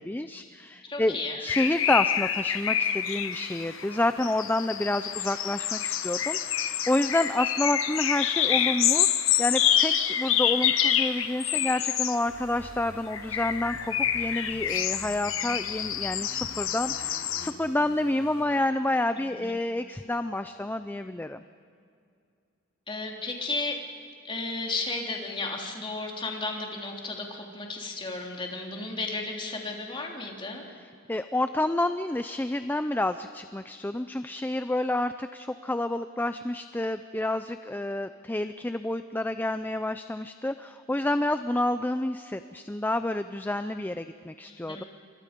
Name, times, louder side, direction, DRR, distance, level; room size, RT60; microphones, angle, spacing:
voice 1, 0.0-21.4 31.1-44.8, left 1 dB, 10° left, 10 dB, 0.5 m, -29 dB
voice 2, 0.8-1.5 19.3-19.5 22.9-23.8 24.2-30.6 44.5-44.9, left 3 dB, 25° left, 0 dB, 3.4 m, -34 dB
sound 1, 1.5-12.2 13.1-17.5, left 10 dB, 70° left, 1.2 m, -27 dB
sound 2, 12.3-18.4, equal, 85° right, 6.4 m, -48 dB
28.5 x 25.0 x 5.3 m, 2.3 s
head